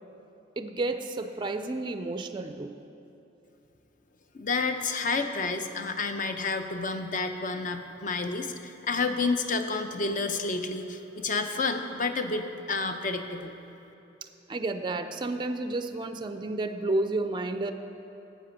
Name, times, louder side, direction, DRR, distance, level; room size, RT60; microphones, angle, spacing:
voice 1, 0.6-2.8 14.5-17.7, right 2 dB, 25° right, 8 dB, 0.4 m, -31 dB
voice 2, 4.3-13.5, left 3 dB, 45° left, 7 dB, 0.6 m, -30 dB
12.5 x 8.3 x 5.9 m, 2.9 s
head